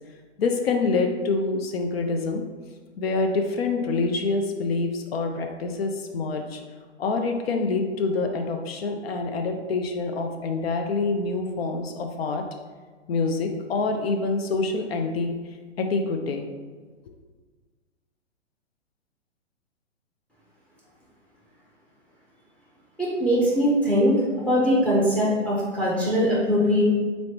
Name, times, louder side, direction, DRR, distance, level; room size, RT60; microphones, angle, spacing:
voice 1, 0.4-2.4 3.0-6.6 7.0-12.4 13.1-15.3 15.8-16.4 17.1-17.2, left 3 dB, 55° left, 4 dB, 0.5 m, -26 dB
voice 2, 23.0-24.2 24.5-26.8, equal, 5° left, -5 dB, 0.6 m, -21 dB
4.0 x 3.1 x 2.9 m, 1.5 s
hypercardioid pair, 130°, 37 cm